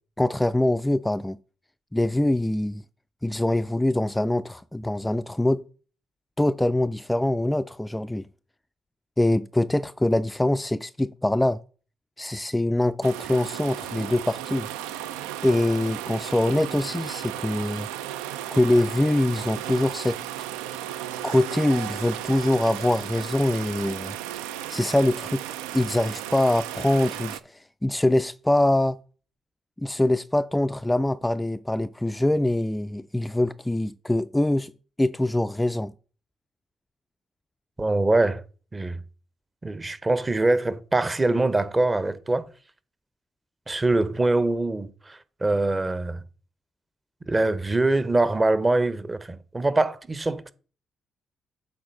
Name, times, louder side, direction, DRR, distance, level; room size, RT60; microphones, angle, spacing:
voice 1, 0.2-1.4 1.9-2.8 3.2-5.6 6.4-8.3 9.2-11.6 12.2-14.7 15.4-17.9 18.5-20.2 21.2-24.2 24.7-25.4 25.7-29.0 29.8-34.7 35.0-35.9, left 1 dB, 10° left, 0.3 m, -24 dB
sound 1, 13.0-27.4, right 12 dB, 80° right, 0.3 m, -35 dB
voice 2, 37.8-38.4 38.7-39.0 39.6-42.5 43.7-46.2 47.3-50.5, right 2 dB, 25° right, 0.8 m, -23 dB
7.8 x 4.0 x 5.3 m
hypercardioid pair, 50°, 0 cm